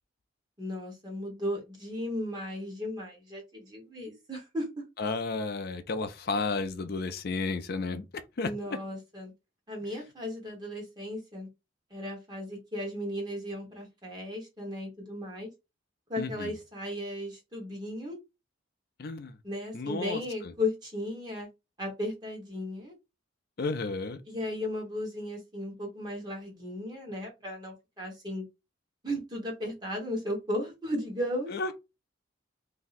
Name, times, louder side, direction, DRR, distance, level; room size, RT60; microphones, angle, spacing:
voice 1, 0.6-4.8 8.4-9.3 9.7-11.5 11.9-15.5 16.1-18.2 19.4-21.5 21.8-22.9 24.3-28.4 29.0-31.5, left 1 dB, 20° right, 1.2 m, -35 dB
voice 2, 5.0-8.0 8.4-8.5 16.2-16.5 19.0-19.4 19.7-20.5 23.6-24.2 31.5-31.7, left 3 dB, 50° left, 0.4 m, -32 dB
2.7 x 2.2 x 4.0 m
head